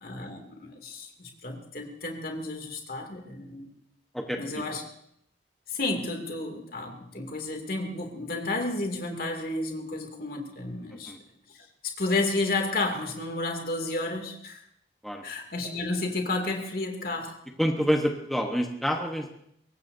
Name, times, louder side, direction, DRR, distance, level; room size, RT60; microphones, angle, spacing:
voice 1, 0.0-3.7 4.4-4.8 5.7-11.2 11.8-14.6 15.2-17.4, left 2 dB, 55° left, 2 dB, 2.6 m, -31 dB
voice 2, 4.1-4.7 11.1-11.2 15.0-15.2 17.6-19.3, equal, ahead, 2 dB, 1.1 m, -27 dB
23.0 x 18.5 x 2.7 m, 0.72 s
head